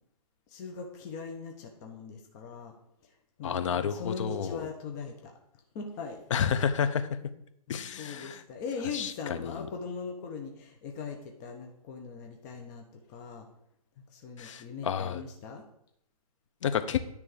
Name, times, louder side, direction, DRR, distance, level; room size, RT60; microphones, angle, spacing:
voice 1, 0.5-2.7 3.4-5.3 5.7-6.2 7.7-13.5 14.1-15.6, left 5 dB, 30° left, 2 dB, 1.0 m, -40 dB
voice 2, 3.4-4.7 6.3-7.2 7.7-8.4 8.9-9.7 14.4-15.2 16.6-17.0, left 7 dB, 50° left, 10 dB, 0.8 m, -30 dB
9.9 x 3.5 x 6.7 m, 0.75 s
hypercardioid pair, 150°, 20 cm